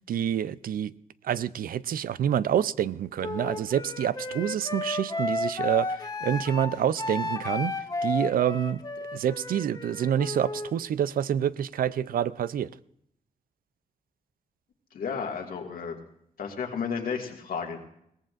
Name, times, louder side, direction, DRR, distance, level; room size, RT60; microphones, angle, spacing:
voice 1, 0.1-0.9 1.2-7.7 8.0-8.8 9.1-12.7, right 9 dB, 85° right, 0.4 m, -27 dB
Wind instrument woodwind instrument, 3.2-10.7, left 2 dB, 25° left, 1.5 m, -33 dB
voice 2, 14.9-16.0 16.4-17.9, left 6 dB, 85° left, 1.9 m, -32 dB
22.0 x 17.5 x 2.5 m
wide cardioid pair, 105°, 15 cm